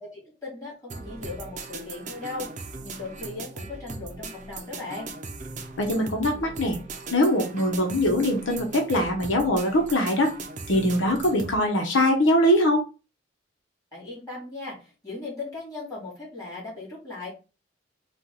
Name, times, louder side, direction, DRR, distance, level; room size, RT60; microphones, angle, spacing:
voice 1, 0.0-5.1 13.9-17.3, left 3 dB, 20° left, -7 dB, 2.5 m, -38 dB
sound 1, 0.9-11.6, right 3 dB, 40° right, 0.6 m, -39 dB
voice 2, 5.8-6.8 7.1-10.3 10.7-12.8, left 1 dB, 90° left, 3 dB, 0.9 m, -22 dB
4.4 x 2.4 x 3.8 m, 0.31 s
head